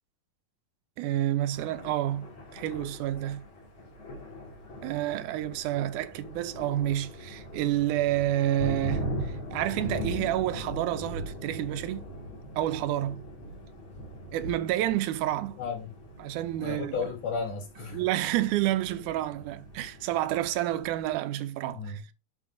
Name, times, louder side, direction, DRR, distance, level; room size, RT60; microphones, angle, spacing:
voice 1, 1.0-3.5 4.8-12.1 12.6-13.2 14.3-15.6 16.2-17.0 17.9-22.0, right 13 dB, 85° right, 2.1 m, -29 dB
Thunder, 1.4-21.2, equal, 45° left, 2.6 m, -40 dB
voice 2, 15.6-15.9 16.6-18.0 21.7-22.0, left 5 dB, 85° left, 3.5 m, -34 dB
11.0 x 4.2 x 2.6 m
omnidirectional pair, 3.5 m